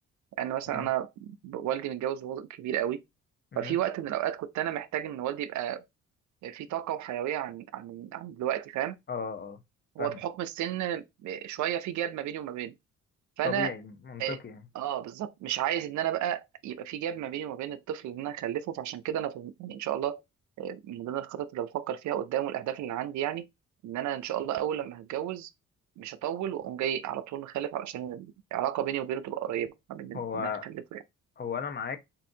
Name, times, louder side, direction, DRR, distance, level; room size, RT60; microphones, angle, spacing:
voice 1, 0.4-3.0 3.6-5.8 6.4-9.0 10.0-12.7 13.4-13.7 14.2-14.4 14.7-20.2 20.6-23.5 23.8-25.5 26.0-31.0, right 11 dB, 70° right, 0.5 m, -32 dB
voice 2, 9.1-9.6 10.0-10.2 13.4-14.6 30.1-30.7 31.4-32.0, left 6 dB, 35° left, 0.8 m, -35 dB
5.5 x 2.5 x 2.7 m
cardioid pair, 90°, 30 cm